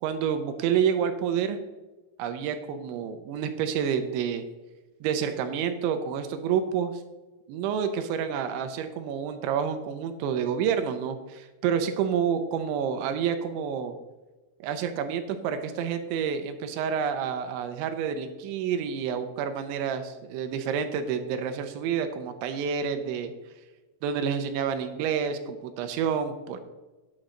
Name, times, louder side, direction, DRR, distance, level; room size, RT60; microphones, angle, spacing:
voice 1, 0.0-1.6 2.2-4.4 5.0-7.0 7.5-13.9 14.6-23.3 24.0-26.6, right 7 dB, 80° right, 8 dB, 2.8 m, -29 dB
9.6 x 9.0 x 3.8 m, 1.2 s
omnidirectional pair, 5.9 m